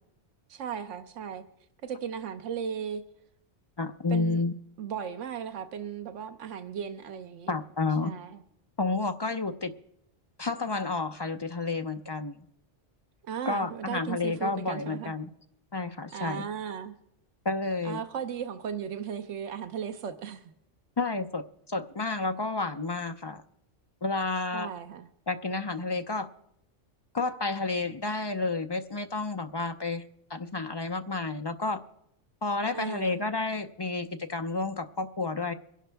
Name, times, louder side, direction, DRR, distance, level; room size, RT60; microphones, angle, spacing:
voice 1, 0.5-1.4 1.8-3.0 4.1-4.4 4.8-7.5 8.0-8.4 13.2-15.1 16.1-16.9 17.8-20.5 24.5-25.1 32.7-33.2, right 7 dB, 85° right, 9 dB, 1.1 m, -36 dB
voice 2, 3.8-4.5 7.5-8.1 8.8-9.7 10.4-12.4 13.5-15.3 15.7-16.5 17.4-18.0 21.0-23.4 24.0-24.7 25.3-26.3 27.1-30.0 30.3-31.8 32.4-35.5, left 3 dB, 40° left, 7 dB, 0.4 m, -30 dB
24.5 x 11.0 x 3.4 m, 0.78 s
omnidirectional pair, 1.2 m